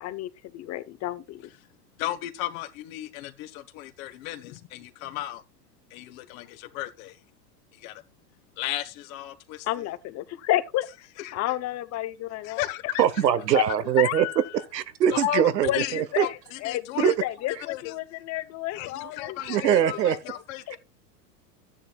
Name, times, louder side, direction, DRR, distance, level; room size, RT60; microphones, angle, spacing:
voice 1, 0.0-1.5 9.7-11.1 11.3-12.6 13.5-13.6 14.0-14.5 15.7-20.4, left 15 dB, 35° left, 0.9 m, -31 dB
voice 2, 2.0-5.4 5.9-7.2 7.7-8.0 8.6-9.9 11.2-11.6 12.4-13.1 13.7-13.9 15.1-15.4 15.7-17.2 17.5-17.9 18.7-20.8, left 14 dB, 55° left, 1.4 m, -35 dB
voice 3, 13.0-14.3 14.7-16.3 17.0-17.1 19.5-20.2, right 10 dB, 85° right, 1.2 m, -22 dB
12.5 x 10.0 x 2.4 m
hypercardioid pair, 115°, 48 cm